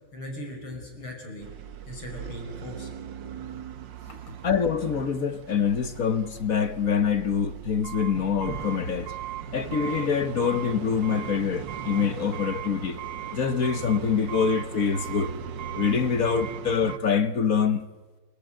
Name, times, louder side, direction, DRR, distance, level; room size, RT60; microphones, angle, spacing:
voice 1, 0.1-1.5 1.9-2.9, equal, 85° left, 6.6 m, -38 dB
sound 1, 1.4-17.0, right 9 dB, 65° right, 1.7 m, -38 dB
voice 2, 4.4-9.1 9.5-13.0 13.3-15.3 15.7-17.9, left 6 dB, 50° left, 1.4 m, -25 dB
28.5 x 19.5 x 9.0 m
omnidirectional pair, 2.3 m